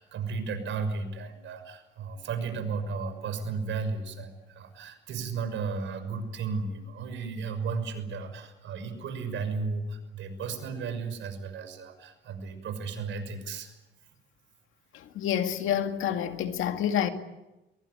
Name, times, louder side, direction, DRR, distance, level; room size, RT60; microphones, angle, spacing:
voice 1, 0.0-13.7, right 4 dB, 75° right, 6.2 m, -34 dB
voice 2, 15.2-17.1, left 9 dB, 85° left, 2.3 m, -28 dB
23.0 x 22.5 x 9.6 m
cardioid pair, 90°, 20 cm